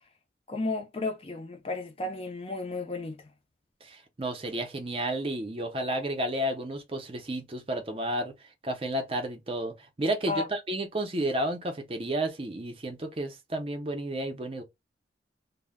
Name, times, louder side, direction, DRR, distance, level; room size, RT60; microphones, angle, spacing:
voice 1, 0.5-3.3 10.3-10.5, left 3 dB, 30° left, 0.5 m, -33 dB
voice 2, 3.8-8.3 8.6-14.6, right 1 dB, 30° right, 0.5 m, -32 dB
2.1 x 2.1 x 3.4 m
head